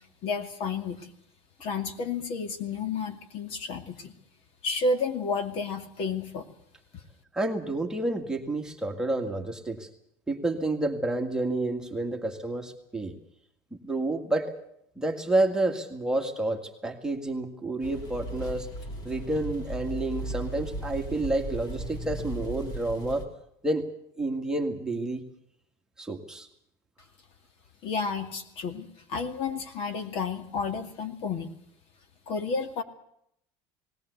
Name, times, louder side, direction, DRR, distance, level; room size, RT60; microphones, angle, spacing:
voice 1, 0.2-1.1 1.6-4.2 4.6-6.5 27.8-31.5 32.3-32.8, left 4 dB, 50° left, 7 dB, 2.4 m, -31 dB
voice 2, 7.3-9.9 10.3-13.1 13.7-14.5 15.0-18.7 19.0-23.2 23.6-23.9 24.2-25.2 26.0-26.5, right 2 dB, 5° right, 2 dB, 1.9 m, -29 dB
sound 1, 17.8-23.3, right 1 dB, 35° left, 3.0 m, -36 dB
19.5 x 17.5 x 8.2 m, 0.74 s
cardioid pair, 150°, 12 cm